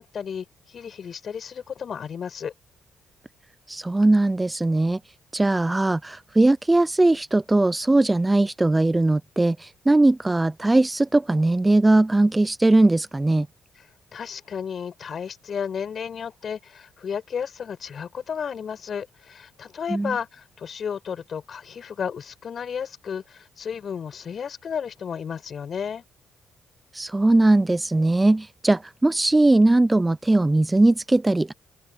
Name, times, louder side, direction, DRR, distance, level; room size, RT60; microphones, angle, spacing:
voice 1, 0.0-2.5 14.1-26.0, left 7 dB, 50° left, 7.9 m, -33 dB
voice 2, 3.7-5.0 5.3-13.5 19.9-20.1 26.9-31.5, right 2 dB, 15° right, 0.5 m, -20 dB
open air
cardioid pair, 90°, 0 cm